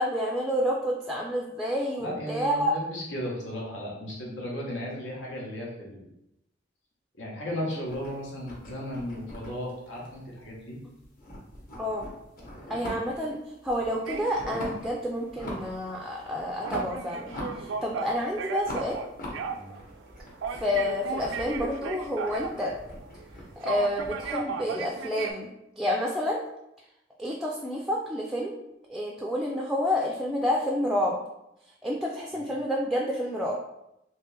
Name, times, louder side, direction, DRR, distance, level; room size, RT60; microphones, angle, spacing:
voice 1, 0.0-2.7 11.8-12.1 12.7-13.4 13.6-19.0 20.6-22.7 23.6-25.5 25.8-26.4 27.2-28.6 28.9-31.2 31.8-33.5, equal, ahead, -2 dB, 0.3 m, -29 dB
voice 2, 2.0-6.1 7.2-10.8 19.5-19.7 32.3-32.5, equal, 90° left, -3 dB, 1.1 m, -35 dB
sound 1, 7.8-10.7 11.0-13.3 13.6-14.9 15.3-15.8 16.1-18.1 18.6-24.3, left 1 dB, 45° left, 0.9 m, -42 dB
sound 2, 14.0-25.3, right 5 dB, 85° right, 0.4 m, -36 dB
3.3 x 2.9 x 3.3 m, 0.86 s
head